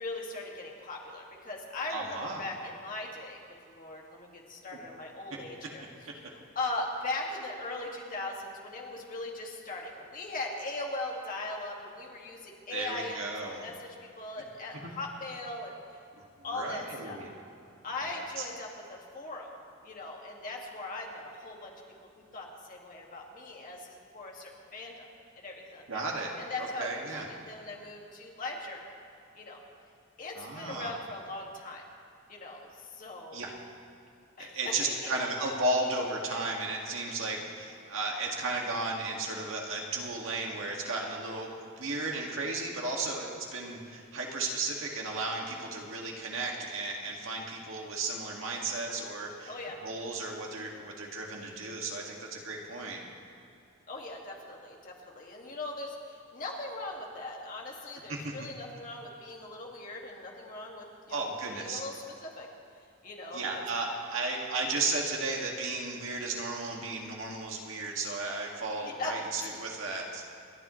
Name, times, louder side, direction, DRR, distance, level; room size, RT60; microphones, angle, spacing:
voice 1, 0.0-3.4 3.7-5.8 6.3-13.9 14.2-15.7 16.4-17.2 17.8-19.5 19.8-21.7 22.3-25.1 25.4-26.0 26.4-28.8 29.4-29.6 30.2-31.8 32.3-33.4 34.4-35.2 49.5-49.8 53.9-61.2 61.5-61.9 62.2-62.5 63.0-63.6 68.8-69.1, left 2 dB, 40° left, -1 dB, 2.1 m, -39 dB
voice 2, 1.9-2.5 12.7-13.7 14.7-14.9 16.2-17.3 18.0-18.4 25.9-26.3 26.6-27.3 30.4-31.0 33.3-33.5 34.4-49.5 49.8-53.0 58.1-58.5 61.1-61.8 63.3-70.2, right 2 dB, 70° right, -1 dB, 2.1 m, -34 dB
29.0 x 10.5 x 3.2 m, 2.5 s
head